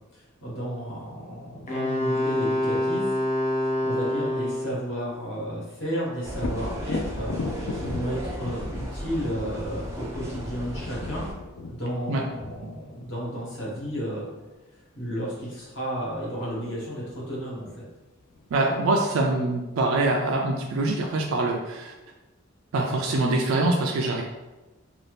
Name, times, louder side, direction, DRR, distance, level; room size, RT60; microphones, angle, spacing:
voice 1, 0.1-3.0 3.8-11.2 11.7-14.3 14.7-17.8, equal, 60° left, -6 dB, 1.1 m, -33 dB
Wind instrument woodwind instrument, 1.7-4.8, left 1 dB, 35° left, 0.5 m, -26 dB
sound 1, 6.2-11.3, equal, 15° right, 0.4 m, -35 dB
Thunder, 6.3-14.0 17.6-17.7 18.2-19.1, left 3 dB, 90° left, 0.4 m, -37 dB
voice 2, 18.5-21.9 22.7-24.2, right 2 dB, 75° right, 0 dB, 0.4 m, -24 dB
2.6 x 2.4 x 3.3 m, 1.1 s
head